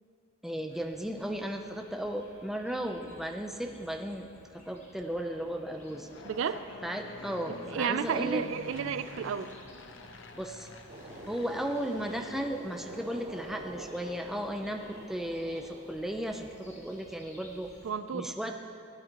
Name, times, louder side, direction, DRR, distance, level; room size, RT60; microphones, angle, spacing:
voice 1, 0.4-6.1 6.8-8.4 10.3-10.7 11.3-17.7 18.1-18.6, equal, ahead, 3 dB, 0.4 m, -35 dB
sound 1, 0.7-17.9, left 2 dB, 30° left, 1.4 m, -55 dB
Fixed-wing aircraft airplane, 2.7-13.7, left 2 dB, 60° left, 0.6 m, -50 dB
voice 2, 6.2-6.6 7.7-9.5 17.8-18.4, right 7 dB, 70° right, 12 dB, 0.4 m, -32 dB
sound 2, 10.9-17.2, right 1 dB, 35° right, 1.1 m, -47 dB
17.5 x 9.4 x 2.9 m, 2.5 s
head